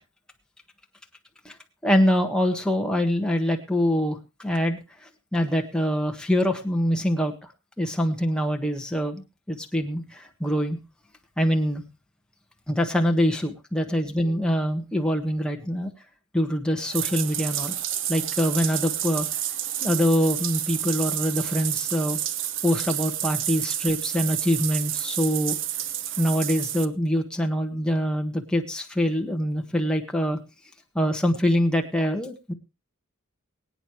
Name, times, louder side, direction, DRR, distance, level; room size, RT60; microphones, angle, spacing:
voice 1, 1.8-4.8 5.3-7.5 7.8-10.8 11.4-11.8 12.7-15.9 16.3-17.8 18.1-19.3 19.8-22.2 22.6-25.6 26.2-30.4 30.9-32.5, equal, 5° left, 3 dB, 1.5 m, -24 dB
Bathtub (filling or washing), 16.8-26.8, right 11 dB, 60° right, 0.8 m, -30 dB
23.5 x 9.0 x 3.1 m, 0.28 s
head